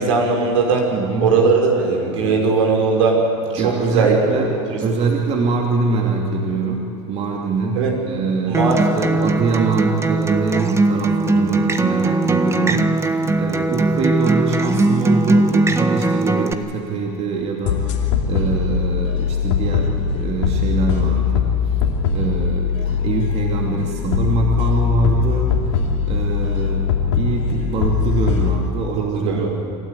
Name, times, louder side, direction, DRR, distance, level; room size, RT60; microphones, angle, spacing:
voice 1, 0.0-0.9 1.2-3.2 3.5-4.4 4.7-4.8 7.8-7.9 8.5-9.2 29.1-29.5, right 4 dB, 75° right, 1 dB, 5.4 m, -18 dB
voice 2, 0.9-1.4 3.5-4.5 4.8-21.8 22.1-25.5 26.0-29.5, right 4 dB, 40° right, 0 dB, 2.8 m, -24 dB
Acoustic guitar, 8.5-16.5, right 2 dB, 15° right, 1.4 m, -19 dB
sound 1, 17.6-28.6, left 7 dB, 75° left, 2.9 m, -21 dB
26.5 x 13.0 x 9.8 m, 2.5 s
hypercardioid pair, 95°, 16 cm